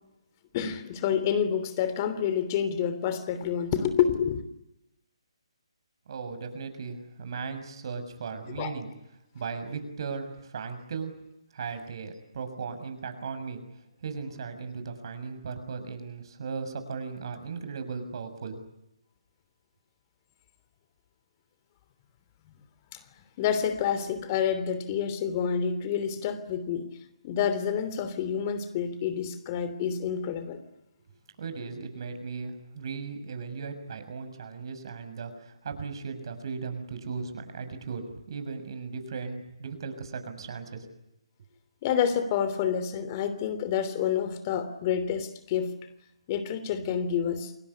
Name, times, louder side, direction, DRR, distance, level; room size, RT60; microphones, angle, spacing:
voice 1, 0.5-4.4 8.6-8.7 22.9-23.0 23.4-26.9 27.2-30.6 41.8-45.7 46.3-47.5, left 8 dB, 30° left, 11 dB, 3.1 m, -28 dB
voice 2, 6.1-8.9 9.3-11.1 11.5-13.6 14.0-18.6 31.4-40.9, right 5 dB, 50° right, 9 dB, 6.6 m, -37 dB
29.0 x 20.0 x 9.8 m, 0.89 s
figure-of-eight pair, 150°, 3 cm